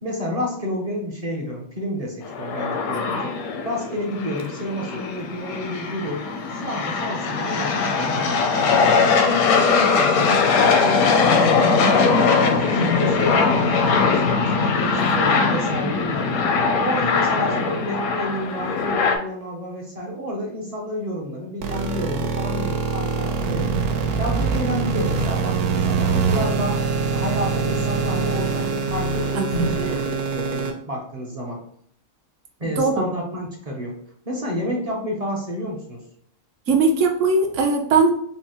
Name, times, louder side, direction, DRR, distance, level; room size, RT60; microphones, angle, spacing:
voice 1, 0.0-3.4 3.6-6.2 6.5-8.8 9.1-11.9 12.6-16.5 16.8-23.9 24.2-31.6 32.6-34.0 34.3-36.0, equal, 40° right, -1 dB, 0.5 m, -30 dB
sound 1, 2.2-19.2, left 4 dB, 80° left, 1.0 m, -21 dB
sound 2, 21.6-30.7, right 5 dB, 90° right, 1.1 m, -24 dB
voice 2, 29.4-29.7 32.8-33.0 36.7-38.1, right 3 dB, 65° right, 3 dB, 1.0 m, -20 dB
5.4 x 2.0 x 2.9 m, 0.65 s
omnidirectional pair, 1.5 m